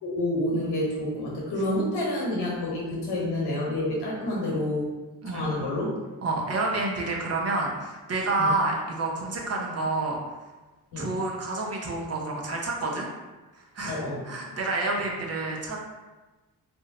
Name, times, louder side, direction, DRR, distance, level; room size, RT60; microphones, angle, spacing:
voice 1, 0.0-4.9 5.3-5.9 8.4-8.5 10.9-11.1 13.8-14.2, left 1 dB, 85° left, -4 dB, 1.2 m, -28 dB
voice 2, 5.2-5.5 6.2-10.2 11.0-13.1 13.5-15.8, right 2 dB, 40° right, -1 dB, 0.7 m, -29 dB
2.7 x 2.1 x 3.7 m, 1.2 s
cardioid pair, 75°, 38 cm